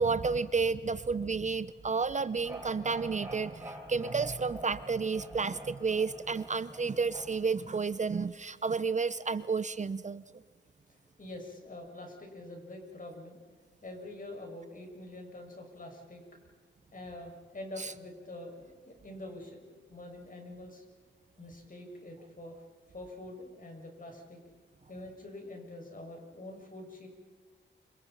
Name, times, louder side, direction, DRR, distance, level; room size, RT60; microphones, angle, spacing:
voice 1, 0.0-10.2 17.8-17.9, right 4 dB, 35° right, 15 dB, 0.7 m, -31 dB
sound 1, 2.2-8.2, right 1 dB, 10° right, 7.1 m, -47 dB
voice 2, 11.2-13.4 13.8-16.2 16.9-20.8 21.4-22.5 22.9-24.4 24.9-27.1, left 1 dB, 45° left, 2 dB, 6.7 m, -45 dB
28.5 x 26.0 x 5.7 m, 1.5 s
cardioid pair, 85°, 20 cm